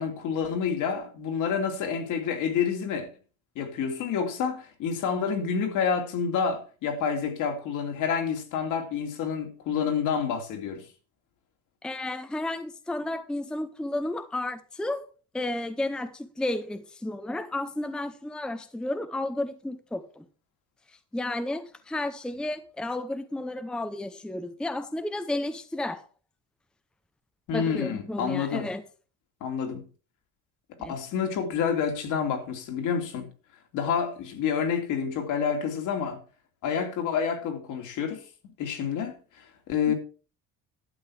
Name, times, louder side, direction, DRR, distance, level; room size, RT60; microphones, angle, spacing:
voice 1, 0.0-3.1 3.5-10.9 27.5-28.7 29.4-29.8 30.9-33.3 33.7-36.2 36.6-38.2 38.6-39.9, left 7 dB, 65° left, 2.8 m, -28 dB
voice 2, 11.8-15.1 15.3-20.3 21.1-26.0 27.5-28.8 30.8-31.0, left 1 dB, 5° left, 0.7 m, -32 dB
12.0 x 8.0 x 4.9 m
cardioid pair, 160°, 32 cm